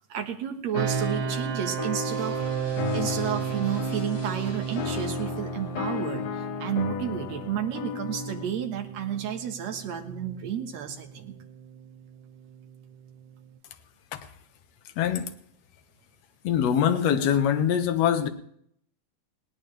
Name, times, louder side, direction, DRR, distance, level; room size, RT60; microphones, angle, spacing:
voice 1, 0.1-2.4 2.9-11.3, right 9 dB, 60° right, 5 dB, 2.3 m, -31 dB
sound 1, 0.7-8.5, left 9 dB, 85° left, 2.8 m, -35 dB
sound 2, 0.7-13.6, right 9 dB, 75° right, 2.2 m, -35 dB
sound 3, 2.1-6.0, left 1 dB, 30° left, 3.2 m, -45 dB
voice 2, 15.0-15.3 16.4-18.3, left 9 dB, 65° left, 7 dB, 1.8 m, -23 dB
20.5 x 17.5 x 3.4 m, 0.68 s
omnidirectional pair, 4.1 m